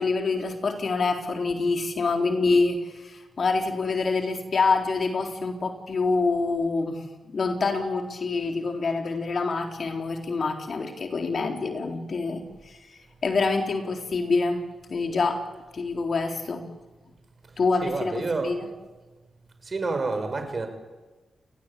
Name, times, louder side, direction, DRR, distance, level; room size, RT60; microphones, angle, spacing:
voice 1, 0.0-7.0 7.3-12.8 13.2-14.6 14.9-15.4 15.7-16.7 17.6-18.7, left 4 dB, 60° left, 4 dB, 3.9 m, -26 dB
voice 2, 17.8-18.6 19.6-20.7, right 3 dB, 45° right, 7 dB, 5.9 m, -28 dB
29.0 x 20.0 x 8.6 m, 1.2 s
supercardioid pair, 40°, 0 cm